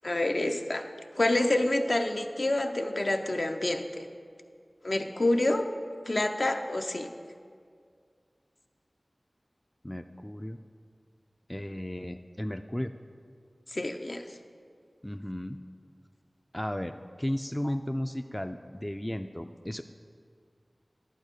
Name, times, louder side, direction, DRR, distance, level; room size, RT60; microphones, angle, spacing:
voice 1, 0.0-0.8 1.2-4.1 4.8-5.7 6.1-7.1 13.7-14.2 17.6-17.7, left 1 dB, 55° left, 5 dB, 0.6 m, -27 dB
voice 2, 9.8-10.6 11.5-12.9 15.0-15.6 16.5-19.8, left 1 dB, 15° left, 8 dB, 0.3 m, -34 dB
11.0 x 4.4 x 8.1 m, 2.2 s
wide cardioid pair, 50°, 0 cm